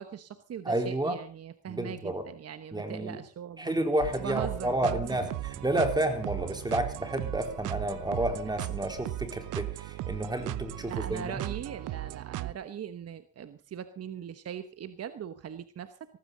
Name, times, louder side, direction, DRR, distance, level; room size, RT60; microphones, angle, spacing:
voice 1, 0.0-3.7 4.2-5.0 10.8-15.9, right 9 dB, 55° right, 11 dB, 1.2 m, -40 dB
voice 2, 0.6-1.2 1.7-2.3 2.7-3.2 3.6-11.4, right 1 dB, 15° right, 5 dB, 4.1 m, -30 dB
sound 1, 4.0-12.5, right 16 dB, 85° right, 0.8 m, -37 dB
18.5 x 15.0 x 4.0 m, 0.38 s
cardioid pair, 90°, 30 cm